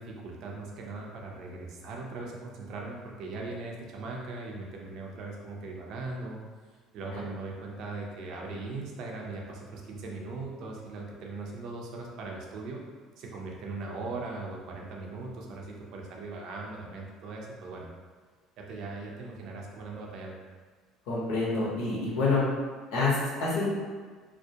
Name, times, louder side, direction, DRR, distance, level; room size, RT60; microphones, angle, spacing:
voice 1, 0.0-6.4 6.9-12.8 13.2-17.9 18.6-20.4, right 3 dB, 65° right, -1 dB, 0.5 m, -39 dB
voice 2, 21.1-22.4 22.9-23.8, left 3 dB, 80° left, -5 dB, 0.7 m, -27 dB
2.3 x 2.0 x 2.7 m, 1.5 s
supercardioid pair, 85°, 0 cm